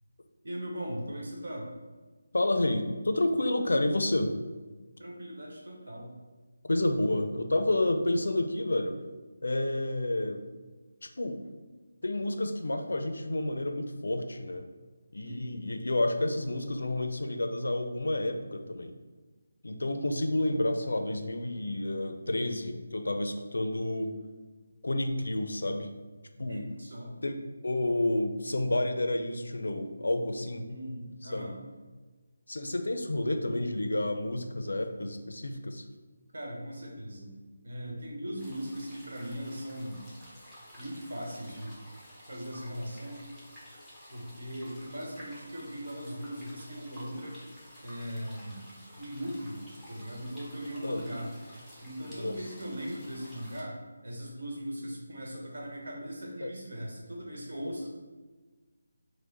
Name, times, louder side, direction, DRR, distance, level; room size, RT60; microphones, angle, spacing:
voice 1, 0.4-1.7 5.0-6.1 15.2-15.6 26.4-27.1 30.6-31.6 36.3-37.3 37.6-40.0 40.8-41.8 42.3-43.3 44.1-47.4 47.8-48.6 49.0-49.6 49.9-51.3 51.8-57.9, equal, 70° right, -2 dB, 1.2 m, -39 dB
voice 2, 2.3-4.3 6.7-9.0 9.4-10.4 11.0-11.4 12.0-14.6 15.1-18.9 19.6-24.1 24.8-25.9 26.4-26.6 27.2-30.7 31.2-31.5 32.5-35.8 50.8-51.0 52.1-52.5 56.4-56.5, left 1 dB, 85° left, 6 dB, 0.5 m, -30 dB
sound 1, 38.4-53.6, equal, 5° right, 0.7 m, -52 dB
4.8 x 2.1 x 4.0 m, 1.3 s
figure-of-eight pair, 170°, 0 cm